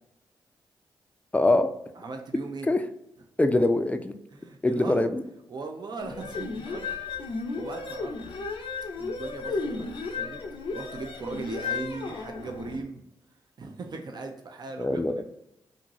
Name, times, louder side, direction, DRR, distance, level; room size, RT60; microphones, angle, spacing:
voice 1, 1.3-1.7 2.7-2.8 3.4-4.2 4.6-5.2 14.8-15.3, left 2 dB, 15° left, 8 dB, 0.4 m, -23 dB
voice 2, 1.9-2.7 4.3-5.0 5.5-6.9 7.5-8.1 9.0-10.4 10.7-13.0 13.6-15.3, right 3 dB, 45° right, 4 dB, 0.5 m, -38 dB
sound 1, 6.0-12.8, left 4 dB, 65° left, 0.5 m, -34 dB
2.6 x 2.5 x 2.9 m, 0.83 s
supercardioid pair, 40°, 10 cm